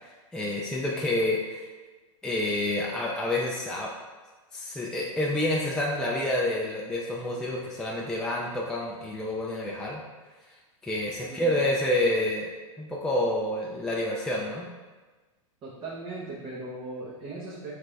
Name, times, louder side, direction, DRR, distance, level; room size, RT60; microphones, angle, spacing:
voice 1, 0.0-1.7 2.2-3.9 4.5-10.0 10.8-12.5 12.8-14.7, left 1 dB, 5° left, -4 dB, 0.4 m, -28 dB
voice 2, 11.2-11.6 15.6-17.7, right 2 dB, 30° right, -7 dB, 0.9 m, -38 dB
3.8 x 3.4 x 3.3 m, 1.3 s
hypercardioid pair, 115°, 17 cm